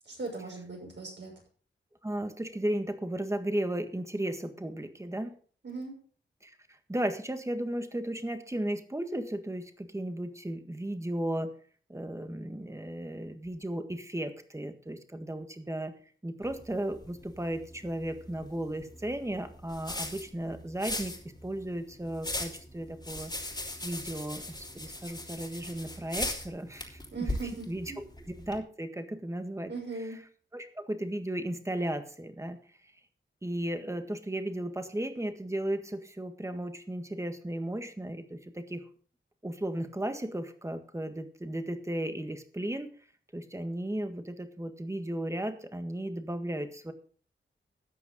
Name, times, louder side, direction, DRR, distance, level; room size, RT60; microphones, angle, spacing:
voice 1, 0.1-1.3 5.6-6.0 27.1-28.0 29.7-30.2, right 3 dB, 60° right, 0 dB, 6.3 m, -39 dB
voice 2, 2.0-5.3 6.4-6.6 6.9-11.5 11.9-15.9 16.2-21.1 21.4-23.3 23.8-27.0 27.4-27.9 28.2-29.7 30.5-32.6 33.4-38.8 39.4-42.9 43.3-46.9, right 1 dB, 15° right, 8 dB, 1.6 m, -35 dB
sound 1, 16.4-28.6, left 1 dB, 20° left, 3.1 m, -40 dB
13.5 x 9.3 x 3.7 m, 0.43 s
wide cardioid pair, 105°, 21 cm